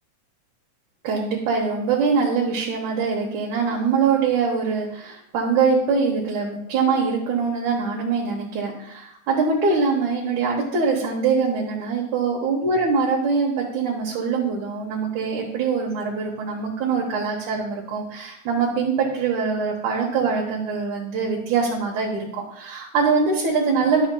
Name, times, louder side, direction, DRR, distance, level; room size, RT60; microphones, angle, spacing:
voice 1, 1.0-24.1, right 5 dB, 85° right, -3 dB, 2.6 m, -23 dB
11.5 x 6.9 x 2.3 m, 0.77 s
omnidirectional pair, 3.3 m